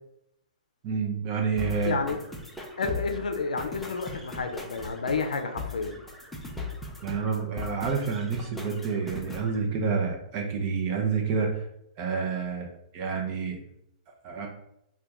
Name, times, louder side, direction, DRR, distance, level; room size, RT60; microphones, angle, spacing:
voice 1, 0.8-2.0 7.0-11.7 12.0-12.7 12.9-13.6 14.2-14.5, right 5 dB, 40° right, 1 dB, 0.6 m, -28 dB
sound 1, 1.6-9.6, left 3 dB, 5° left, 0.6 m, -39 dB
voice 2, 1.8-2.2 2.8-6.0, left 4 dB, 90° left, 7 dB, 0.4 m, -30 dB
2.9 x 2.2 x 3.4 m, 0.77 s
hypercardioid pair, 130°, 4 cm